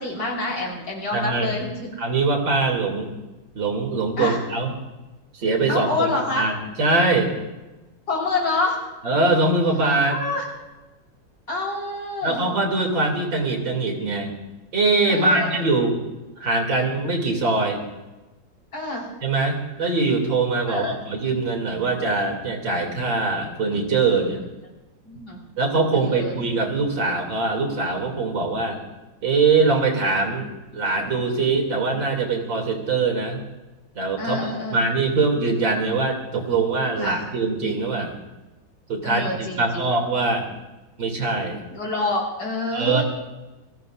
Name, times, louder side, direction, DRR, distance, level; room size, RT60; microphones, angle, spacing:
voice 1, 0.0-1.9 4.2-4.4 5.7-6.5 8.1-8.8 10.1-10.4 11.5-12.4 15.1-15.6 18.7-19.1 20.7-21.0 25.0-25.4 25.9-26.3 34.2-34.9 37.0-37.2 39.0-39.8 41.7-43.0, left 2 dB, 65° left, -3 dB, 5.9 m, -27 dB
voice 2, 1.1-1.6 2.0-3.1 3.6-4.7 5.3-7.4 9.0-10.2 12.2-14.4 14.7-15.9 16.4-17.8 19.2-24.4 25.6-28.8 29.2-30.5 30.7-33.4 34.0-34.5 34.7-38.2 38.9-40.5 41.0-41.6 42.7-43.0, right 3 dB, 70° right, 2 dB, 3.6 m, -22 dB
28.0 x 18.0 x 2.6 m, 1.1 s
omnidirectional pair, 2.1 m